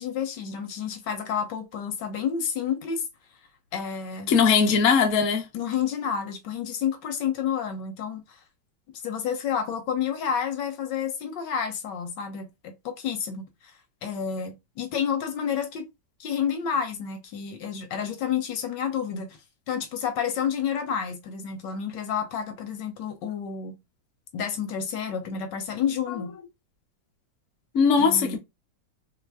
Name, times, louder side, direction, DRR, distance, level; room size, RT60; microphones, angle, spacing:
voice 1, 0.0-3.0 3.7-4.3 5.5-8.4 9.0-13.7 14.0-15.9 16.2-19.3 19.7-23.7 24.3-26.3 28.0-28.4, left 7 dB, 75° left, 1.3 m, -30 dB
voice 2, 4.3-5.5 27.7-28.4, left 6 dB, 55° left, 0.9 m, -20 dB
3.1 x 2.5 x 3.4 m
omnidirectional pair, 2.0 m